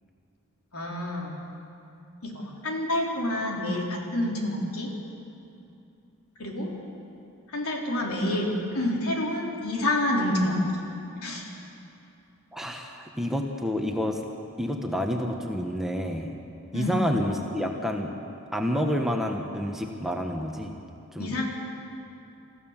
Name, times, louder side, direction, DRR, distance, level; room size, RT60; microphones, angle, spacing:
voice 1, 0.7-1.4 2.2-4.9 6.4-6.7 7.5-10.8 11.2-11.5 16.7-17.0 21.2-21.5, left 1 dB, 80° left, -1 dB, 3.7 m, -28 dB
voice 2, 12.5-14.2 14.6-16.3 16.7-18.1 18.5-20.7 21.1-21.5, equal, ahead, 2 dB, 1.2 m, -29 dB
27.5 x 15.0 x 7.4 m, 2.8 s
head